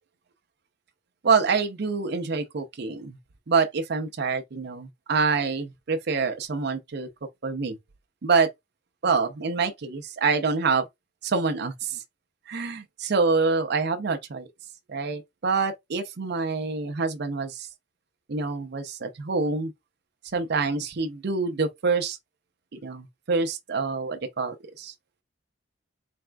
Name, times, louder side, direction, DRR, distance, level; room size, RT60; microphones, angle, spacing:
voice 1, 1.2-3.2 3.5-7.1 7.4-7.8 8.2-8.5 9.0-10.9 11.2-12.0 12.5-14.4 14.9-17.7 18.3-19.7 20.3-22.2 22.7-24.9, right 4 dB, 55° right, 0.5 m, -26 dB
4.1 x 3.4 x 2.2 m
head